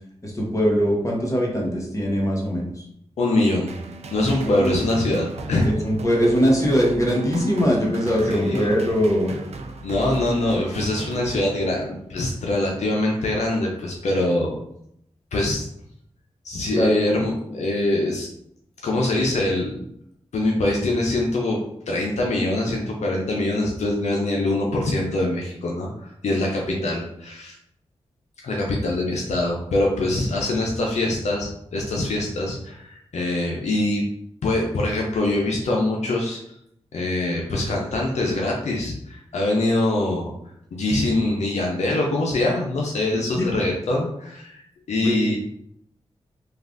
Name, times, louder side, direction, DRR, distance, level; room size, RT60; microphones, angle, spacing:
voice 1, 0.2-2.8 4.1-4.9 5.6-9.3 16.7-16.9 26.4-26.8 43.1-43.5 44.9-45.1, equal, 25° left, -2 dB, 1.0 m, -22 dB
voice 2, 3.2-3.7 4.1-5.7 8.3-8.7 9.8-14.5 15.3-15.6 16.4-18.3 18.8-19.8 20.3-21.6 21.9-27.6 28.4-34.0 34.4-36.4 36.9-40.3 40.7-45.4, left 2 dB, 75° left, -1 dB, 0.5 m, -23 dB
sound 1, 3.7-12.0, right 3 dB, 65° right, 0.4 m, -36 dB
3.2 x 2.3 x 2.5 m, 0.74 s
cardioid pair, 50°, 12 cm